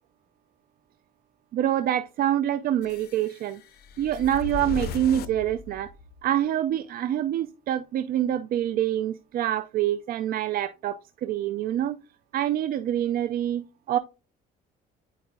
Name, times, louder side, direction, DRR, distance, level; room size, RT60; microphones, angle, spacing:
voice 1, 1.5-3.6 4.0-5.9 6.2-12.0 12.3-14.0, right 11 dB, 60° right, 9 dB, 0.5 m, -26 dB
sound 1, 2.8-6.3, left 5 dB, 70° left, 0.7 m, -37 dB
9.4 x 4.8 x 2.3 m, 0.31 s
cardioid pair, 110°, 17 cm